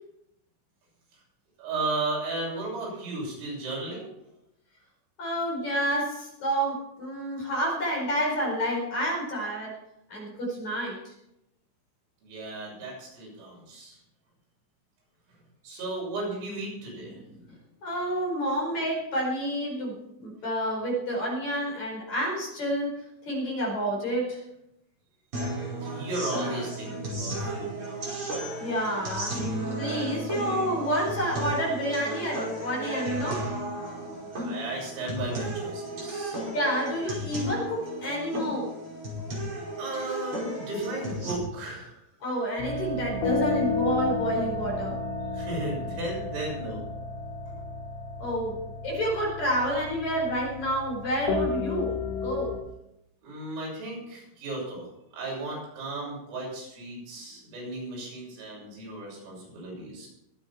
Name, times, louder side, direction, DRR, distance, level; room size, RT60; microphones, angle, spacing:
voice 1, 1.6-4.1 12.2-14.0 15.6-17.2 25.7-27.8 34.3-36.4 39.8-42.0 45.3-46.8 47.5-47.6 53.2-54.8 55.1-60.1, right 2 dB, 85° right, -3 dB, 9.2 m, -35 dB
voice 2, 5.2-9.8 10.1-11.1 17.8-23.0 23.3-24.4 28.6-33.5 36.5-38.7 42.2-44.9 48.2-48.6 48.8-51.9 52.2-52.6, equal, 35° left, -2 dB, 5.8 m, -29 dB
sound 1, 25.3-41.3, right 1 dB, 25° right, 5.6 m, -34 dB
sound 2, 42.6-52.6, left 3 dB, 75° left, 4.5 m, -32 dB
23.0 x 9.3 x 4.4 m, 0.84 s
omnidirectional pair, 5.8 m